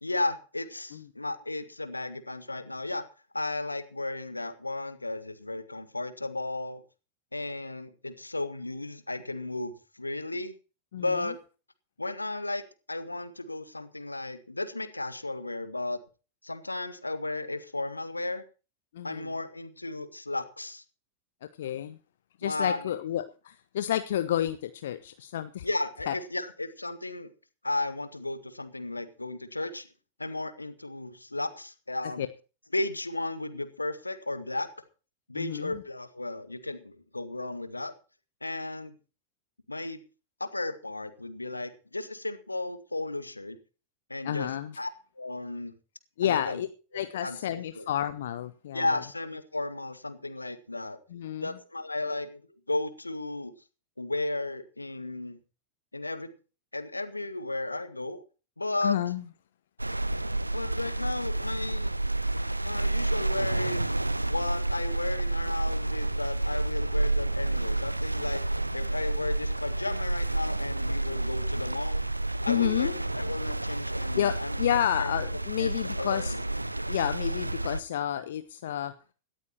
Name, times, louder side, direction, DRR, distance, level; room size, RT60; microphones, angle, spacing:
voice 1, 0.0-3.0 3.3-6.8 7.3-10.5 11.0-11.4 12.0-16.0 16.4-18.4 19.0-20.8 22.4-22.9 25.6-27.3 27.6-29.9 30.2-32.3 32.7-34.7 35.3-37.9 38.4-38.9 39.7-40.0 40.4-43.6 44.1-44.5 44.8-44.9 45.2-45.7 46.2-46.6 46.9-47.4 47.8-47.9 48.7-51.0 51.4-52.4 52.7-53.5 54.0-55.4 55.9-56.3 56.7-58.2 58.6-59.0 60.5-61.9 62.6-63.9 64.3-68.4 68.7-72.0 72.4-75.2 75.6-76.4, left 2 dB, 85° left, 12 dB, 1.8 m, -34 dB
voice 2, 18.9-19.3 21.6-22.0 22.4-25.7 26.1-26.2 32.2-32.3 35.3-35.8 44.2-44.7 46.2-46.7 46.9-49.0 51.1-51.5 58.8-59.2 72.5-73.0 74.2-76.3 76.9-78.9, left 11 dB, 60° left, 12 dB, 0.9 m, -30 dB
sound 1, 59.8-77.8, right 2 dB, 85° right, 0.6 m, -30 dB
18.0 x 14.0 x 2.9 m, 0.35 s
figure-of-eight pair, 90°, 0 cm